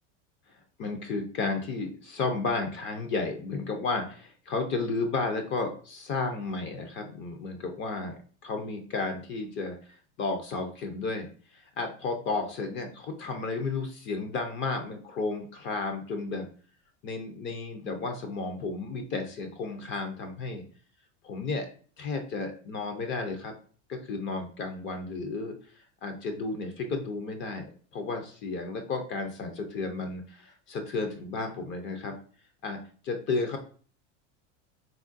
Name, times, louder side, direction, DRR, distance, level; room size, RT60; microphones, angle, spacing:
voice 1, 0.8-11.3 11.5-16.5 17.0-20.6 21.2-21.7 22.0-23.5 23.9-25.6 26.0-32.2 32.6-32.8 33.0-33.6, left 3 dB, 35° left, 5 dB, 0.5 m, -33 dB
3.5 x 2.2 x 2.5 m, 0.41 s
supercardioid pair, 130°, 36 cm